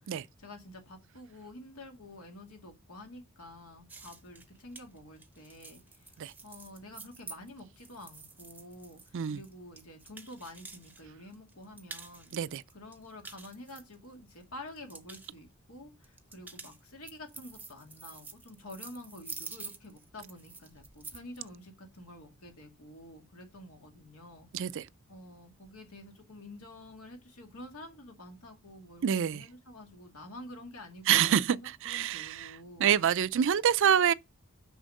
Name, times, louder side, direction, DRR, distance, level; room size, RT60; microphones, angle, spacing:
voice 1, 0.0-6.1 6.4-12.3 12.7-24.7 25.1-32.9, left 1 dB, 85° left, 2.1 m, -49 dB
sound 1, 3.9-11.0 11.3-12.3 12.7-14.3 14.7-15.3 16.0-21.4, right 4 dB, 10° right, 0.7 m, -48 dB
voice 2, 24.5-24.9 29.0-29.4 31.1-31.6 31.8-32.5 32.8-34.1, right 9 dB, 60° right, 0.4 m, -26 dB
6.3 x 5.0 x 6.4 m
head